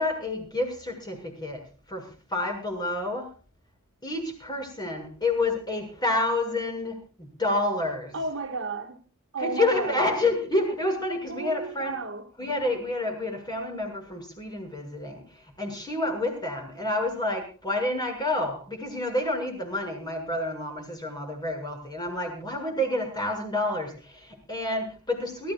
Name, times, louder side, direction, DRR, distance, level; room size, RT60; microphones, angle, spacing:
voice 1, 0.0-1.6 1.9-3.3 4.0-8.2 9.4-12.0 12.4-25.5, left 2 dB, 20° left, 7.1 m, -29 dB
voice 2, 8.1-9.0 9.3-10.1 11.3-12.3, right 3 dB, 60° right, 2.2 m, -33 dB
29.5 x 15.5 x 2.5 m
head